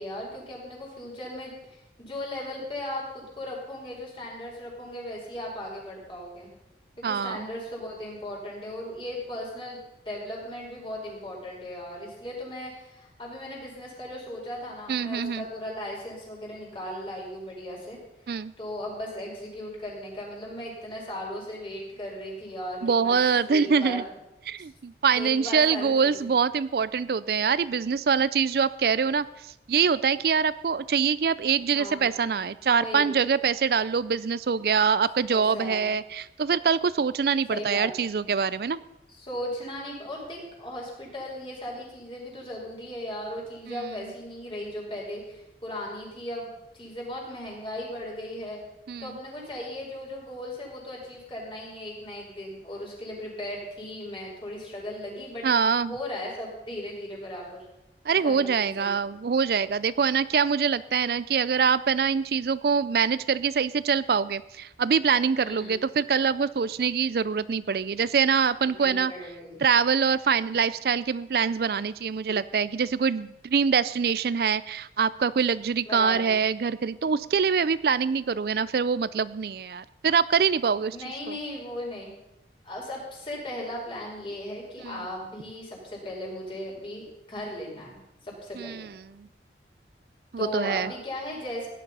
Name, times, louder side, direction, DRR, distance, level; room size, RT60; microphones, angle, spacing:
voice 1, 0.0-6.5 7.0-18.0 18.6-23.2 23.4-24.1 25.2-26.3 31.7-32.1 32.8-33.1 35.3-35.9 37.5-38.1 39.1-48.6 49.0-55.5 55.9-57.6 58.2-58.9 65.4-65.8 68.6-69.6 75.8-76.3 80.9-82.1 82.6-88.8 90.4-91.7, left 1 dB, 30° left, -3 dB, 5.4 m, -37 dB
voice 2, 7.0-7.5 14.9-15.4 18.3-18.5 22.8-24.0 24.5-38.8 43.7-43.8 48.9-49.1 55.4-55.9 58.1-69.1 69.6-81.0 81.3-81.4 84.8-85.0 88.6-89.3 90.3-90.9, right 6 dB, 60° right, 17 dB, 0.4 m, -24 dB
17.0 x 11.0 x 5.5 m, 0.91 s
head